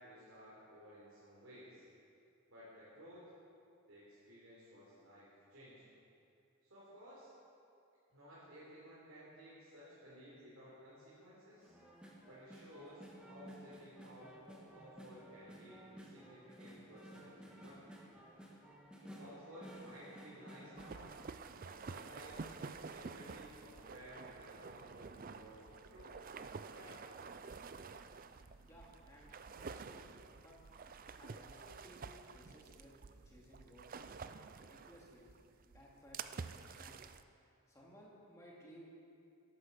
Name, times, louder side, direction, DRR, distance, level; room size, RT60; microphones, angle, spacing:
voice 1, 0.0-1.8 2.5-3.2 3.9-5.8 6.6-7.3 8.1-11.7 12.2-18.0 19.0-21.1 21.6-26.1 26.7-27.0, equal, 70° right, -9 dB, 3.9 m, -56 dB
sound 1, 11.6-22.0 22.4-24.8 25.4-25.5 25.7-26.0 26.6-27.5 27.8-27.9, equal, 5° right, 1.5 m, -56 dB
sound 2, 20.8-37.2, right 5 dB, 40° right, 0.4 m, -50 dB
voice 2, 28.7-30.0 30.3-30.6 31.0-32.9 33.2-33.9 34.6-35.3 35.7-37.1 37.7-38.8, equal, 15° left, -4 dB, 2.6 m, -59 dB
14.0 x 11.5 x 5.9 m, 2.5 s
head